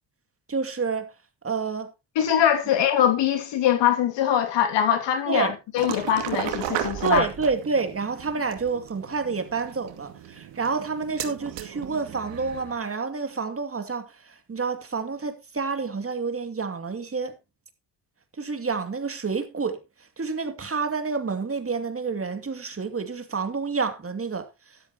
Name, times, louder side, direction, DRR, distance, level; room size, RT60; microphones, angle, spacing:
voice 1, 0.5-1.1 1.4-1.9 5.3-5.5 7.0-17.3 18.4-19.8 20.2-24.5, right 4 dB, 30° right, 2.5 m, -28 dB
voice 2, 2.2-7.3, left 10 dB, 80° left, 2.8 m, -22 dB
sound 1, 5.8-12.8, right 10 dB, 80° right, 2.3 m, -35 dB
12.5 x 12.0 x 2.9 m
supercardioid pair, 70°, 42 cm